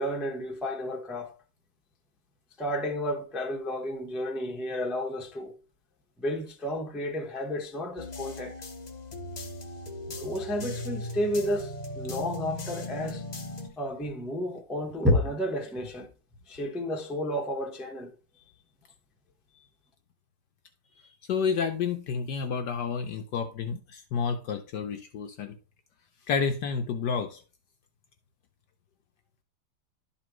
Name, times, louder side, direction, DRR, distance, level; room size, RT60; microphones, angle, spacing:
voice 1, 0.0-1.3 2.6-5.5 6.2-8.6 10.2-13.3 13.8-16.1 16.5-18.1, left 1 dB, ahead, 0.5 m, -31 dB
sound 1, 8.0-13.7, left 2 dB, 50° left, 0.4 m, -38 dB
voice 2, 21.3-25.5 26.3-27.4, left 6 dB, 70° left, 1.1 m, -30 dB
11.5 x 4.3 x 3.0 m
omnidirectional pair, 2.3 m